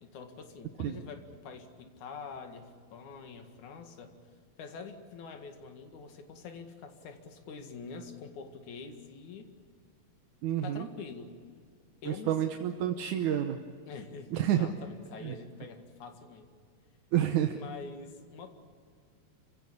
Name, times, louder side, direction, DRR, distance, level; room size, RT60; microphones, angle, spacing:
voice 1, 0.0-4.2 4.6-9.5 10.6-11.4 12.0-12.5 13.9-16.5 17.5-18.5, left 5 dB, 60° left, 6 dB, 3.2 m, -45 dB
voice 2, 10.4-10.9 12.1-13.6 14.3-14.7 15.2-15.3 17.1-17.6, right 11 dB, 70° right, 5 dB, 2.1 m, -29 dB
28.0 x 16.5 x 8.5 m, 2.2 s
omnidirectional pair, 4.2 m